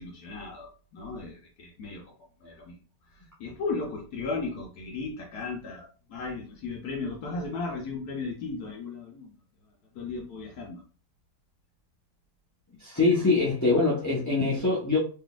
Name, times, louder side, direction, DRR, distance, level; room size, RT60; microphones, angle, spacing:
voice 1, 0.0-2.1 2.4-2.8 3.1-9.4 9.9-10.8, left 3 dB, 70° left, 0 dB, 1.2 m, -36 dB
voice 2, 12.8-15.0, left 3 dB, 15° left, -8 dB, 0.7 m, -23 dB
3.9 x 3.2 x 2.4 m, 0.38 s
omnidirectional pair, 1.8 m